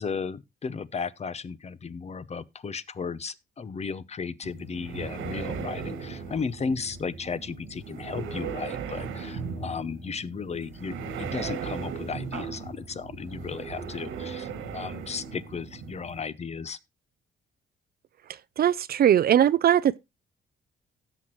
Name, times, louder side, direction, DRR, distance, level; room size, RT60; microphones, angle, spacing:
voice 1, 0.0-16.8, left 5 dB, 35° left, 0.7 m, -35 dB
sound 1, 4.4-16.2, right 6 dB, 90° right, 1.9 m, -37 dB
voice 2, 18.6-20.0, right 10 dB, 50° right, 0.5 m, -20 dB
17.0 x 6.0 x 3.0 m
cardioid pair, 90°, 20 cm